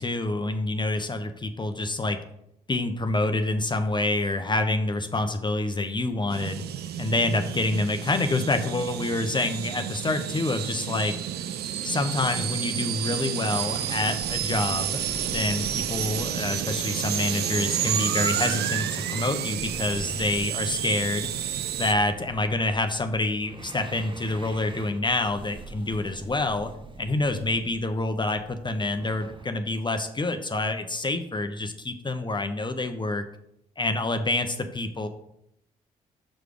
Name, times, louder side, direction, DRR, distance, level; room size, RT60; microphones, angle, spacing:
voice 1, 0.0-2.2 2.7-6.6 7.0-11.2 11.8-21.3 21.8-26.7 27.0-33.2 33.8-35.1, left 2 dB, 25° left, 7 dB, 0.8 m, -27 dB
sound 1, 6.3-21.9, right 10 dB, 60° right, 0.6 m, -30 dB
sound 2, 13.6-29.5, right 3 dB, 25° right, 0.9 m, -44 dB
6.3 x 4.9 x 4.9 m, 0.78 s
hypercardioid pair, 45°, 19 cm